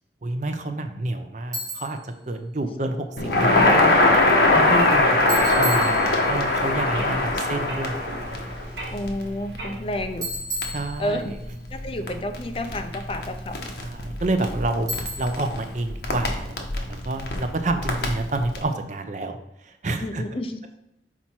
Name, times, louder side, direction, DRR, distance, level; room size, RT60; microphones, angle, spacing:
voice 1, 0.2-3.9 4.5-8.0 8.3-8.6 10.7-11.3 13.8-20.2, right 2 dB, 45° right, 7 dB, 0.6 m, -29 dB
Bicycle, 1.5-2.1 5.3-6.5 10.2-11.5 14.9-15.5, equal, 20° right, 2.2 m, -33 dB
Crackle, 3.2-18.6, left 2 dB, 70° left, 1.0 m, -23 dB
voice 2, 3.4-3.8 7.0-7.5 8.9-10.3 11.0-11.4 11.7-13.7 20.0-20.6, left 1 dB, 30° left, 7 dB, 0.5 m, -31 dB
sound 1, 4.3-9.8, right 1 dB, 70° right, 1.4 m, -39 dB
6.0 x 4.4 x 4.3 m, 0.89 s
head